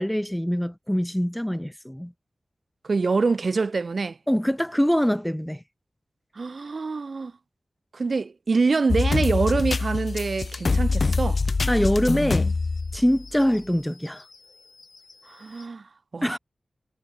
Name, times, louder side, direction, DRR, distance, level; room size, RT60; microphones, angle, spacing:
voice 1, 0.0-2.1 4.3-5.6 11.7-12.6 12.9-14.2 16.2-16.4, equal, 5° left, 2.2 m, -24 dB
voice 2, 2.8-4.2 6.4-7.3 7.9-11.4 15.3-15.8 16.1-16.4, right 4 dB, 60° right, 3.9 m, -25 dB
sound 1, 8.9-13.6 14.0-14.1 15.1-15.2, left 3 dB, 55° left, 1.0 m, -25 dB
wide cardioid pair, 90°, 0 cm